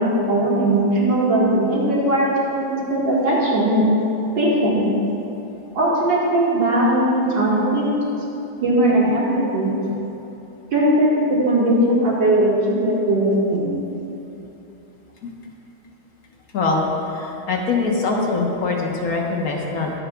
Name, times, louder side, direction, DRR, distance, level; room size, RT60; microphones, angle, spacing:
voice 1, 0.0-3.9 4.3-4.8 5.7-7.9 8.6-9.7 10.7-13.8, right 1 dB, 60° right, -6 dB, 2.6 m, -19 dB
voice 2, 16.5-16.9 17.1-19.9, left 3 dB, 50° left, 0 dB, 1.4 m, -23 dB
23.0 x 7.9 x 2.3 m, 2.9 s
omnidirectional pair, 2.2 m